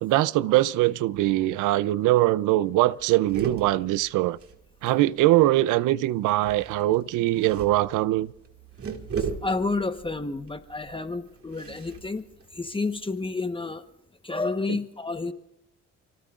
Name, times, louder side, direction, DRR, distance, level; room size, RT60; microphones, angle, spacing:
voice 1, 0.0-4.4 4.8-8.3, right 16 dB, 90° right, 0.5 m, -22 dB
sound 1, 2.0-2.1 2.3-2.5 2.8-5.2 6.3-13.2, right 6 dB, 50° right, 2.2 m, -38 dB
voice 2, 9.2-12.2 12.5-13.8 14.2-15.3, left 3 dB, 15° left, 1.1 m, -30 dB
29.0 x 18.5 x 2.5 m
cardioid pair, 90°, 30 cm